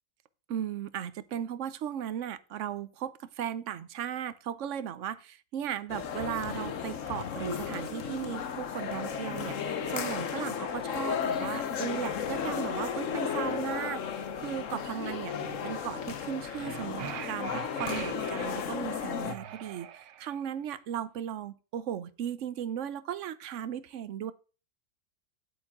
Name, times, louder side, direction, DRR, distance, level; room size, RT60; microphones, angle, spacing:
voice 1, 0.5-24.3, right 9 dB, 60° right, 0.8 m, -36 dB
sound 1, 5.9-19.3, left 7 dB, 55° left, 1.1 m, -34 dB
sound 2, 16.4-18.5 19.2-20.4, right 10 dB, 85° right, 1.4 m, -43 dB
9.7 x 8.4 x 3.6 m
omnidirectional pair, 1.9 m